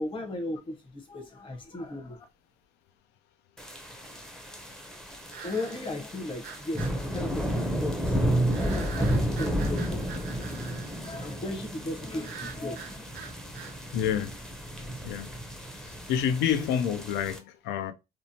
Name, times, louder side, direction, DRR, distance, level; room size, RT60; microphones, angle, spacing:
voice 1, 0.0-2.2 5.4-10.6 11.0-13.2, left 2 dB, 30° left, 0.9 m, -37 dB
sound 1, 1.6-1.7 5.3-6.0 6.4-7.0 8.5-11.1 12.2-13.8, right 6 dB, 80° right, 0.6 m, -44 dB
sound 2, 3.6-17.4, right 1 dB, 5° left, 0.5 m, -32 dB
voice 2, 13.9-14.3 15.0-15.3 15.8-17.9, left 9 dB, 85° left, 0.4 m, -28 dB
2.9 x 2.1 x 2.7 m
cardioid pair, 110°, 17 cm